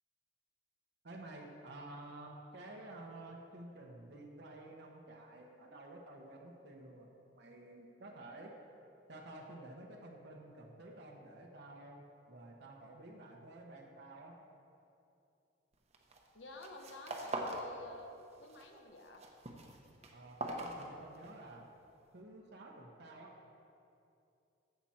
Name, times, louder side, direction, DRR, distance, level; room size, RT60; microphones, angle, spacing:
voice 1, 1.0-8.6 9.1-14.4 20.1-21.7 22.1-23.4, right 2 dB, 60° right, 0 dB, 1.0 m, -51 dB
sound 1, 15.9-16.3 16.5-17.7 18.0-18.6 19.0-21.4, right 2 dB, 35° right, 0.9 m, -42 dB
voice 2, 16.3-18.1 18.4-19.2, left 2 dB, 80° left, 3 dB, 1.1 m, -51 dB
15.0 x 5.9 x 4.3 m, 2.7 s
head